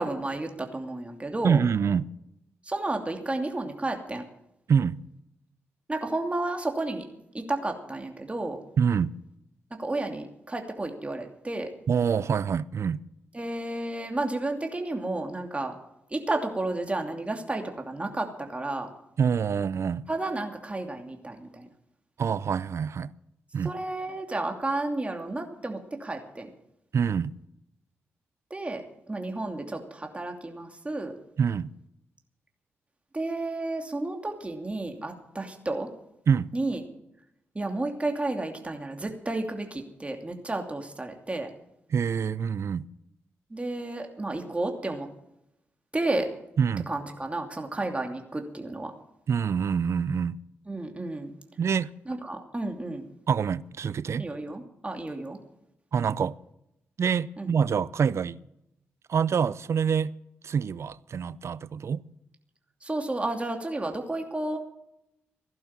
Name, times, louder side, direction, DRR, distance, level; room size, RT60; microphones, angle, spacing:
voice 1, 0.0-1.6 2.6-4.2 5.9-7.0 7.3-8.6 9.8-11.7 13.3-15.7 16.1-18.9 20.1-21.7 23.6-26.5 28.5-28.8 29.1-31.1 33.1-35.9 36.5-36.8 37.5-41.5 43.5-45.1 45.9-46.3 46.9-48.9 50.7-51.3 52.1-53.0 54.2-55.4 57.4-57.5 62.8-64.6, right 2 dB, 25° right, 2.7 m, -32 dB
voice 2, 1.4-2.1 4.7-5.0 8.8-9.1 11.9-13.0 19.2-20.1 22.2-23.1 23.5-23.7 26.9-27.3 31.4-31.7 36.3-36.5 41.9-42.8 46.6-46.9 49.3-50.4 51.6-51.9 53.3-54.3 55.9-56.4 57.0-58.4 59.1-60.1 60.4-62.0, right 6 dB, 60° right, 0.5 m, -26 dB
16.0 x 11.5 x 7.4 m
supercardioid pair, 45°, 5 cm